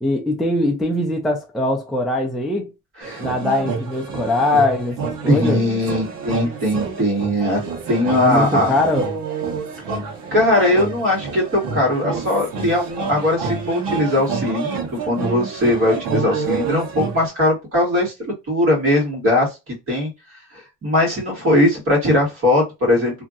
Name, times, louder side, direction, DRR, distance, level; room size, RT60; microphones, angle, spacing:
voice 1, 0.0-2.7 3.2-5.6 8.2-9.1, left 2 dB, ahead, 0.3 m, -21 dB
sound 1, 3.0-17.3, right 5 dB, 90° right, 1.0 m, -28 dB
voice 2, 5.3-7.6 7.9-8.7 10.3-18.1 18.5-20.1 20.8-23.2, left 1 dB, 40° right, 1.8 m, -19 dB
2.8 x 2.6 x 2.4 m
cardioid pair, 170°, 33 cm